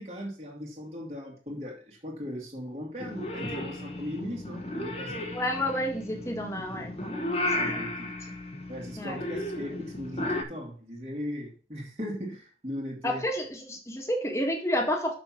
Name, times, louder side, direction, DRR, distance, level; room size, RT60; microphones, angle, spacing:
voice 1, 0.0-5.3 7.5-8.1 8.7-13.2, equal, 35° right, -3 dB, 2.5 m, -38 dB
Purr / Meow, 3.0-10.4, left 1 dB, 35° left, 1.4 m, -34 dB
voice 2, 5.3-7.5 7.7-7.8 9.0-9.2 13.0-15.1, equal, 15° left, 2 dB, 1.8 m, -30 dB
7.0 x 6.1 x 6.0 m, 0.37 s
head